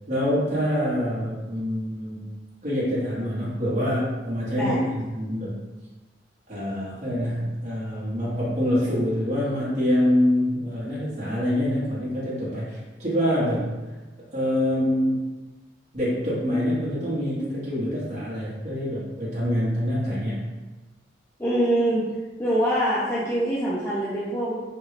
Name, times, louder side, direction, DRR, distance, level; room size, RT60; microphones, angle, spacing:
voice 1, 0.1-2.3 2.6-5.6 6.5-13.8 14.3-15.2 15.9-20.4, equal, 40° right, -8 dB, 1.0 m, -25 dB
voice 2, 21.4-22.1 22.4-24.6, right 1 dB, 15° left, -8 dB, 0.4 m, -24 dB
3.4 x 2.2 x 3.1 m, 1.2 s
head